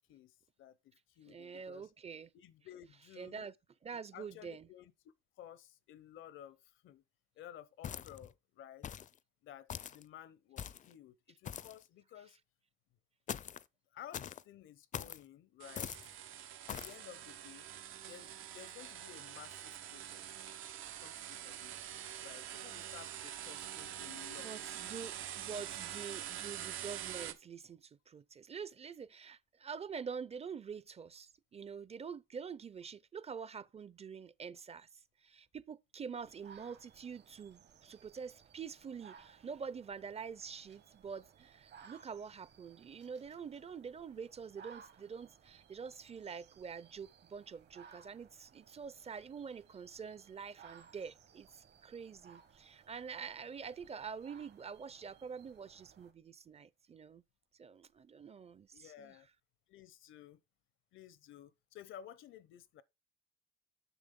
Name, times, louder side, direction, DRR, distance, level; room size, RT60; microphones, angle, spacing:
voice 1, 0.1-1.9 2.3-3.5 4.1-4.9 5.4-7.0 7.4-8.9 9.4-12.4 13.9-16.0 16.7-17.7 18.0-20.3 21.0-21.8 22.2-24.7 58.7-59.3 59.7-60.4 60.9-62.8, left 11 dB, 80° left, 0.8 m, -54 dB
voice 2, 1.3-2.3 3.2-3.5 3.8-4.7 23.2-23.4 24.4-34.9 35.2-57.2 57.6-59.2, right 6 dB, 30° right, 0.5 m, -46 dB
sound 1, 7.8-8.3 8.8-9.1 9.7-10.0 10.6-10.9 11.4-11.8 13.3-13.6 14.1-14.4 14.9-15.2 15.8-16.1 16.7-17.0, left 8 dB, 40° left, 0.4 m, -43 dB
sound 2, 15.6-27.3, right 11 dB, 85° right, 0.8 m, -45 dB
sound 3, 36.2-56.1, right 7 dB, 60° right, 1.2 m, -61 dB
7.0 x 6.2 x 3.7 m
cardioid pair, 90°, 20 cm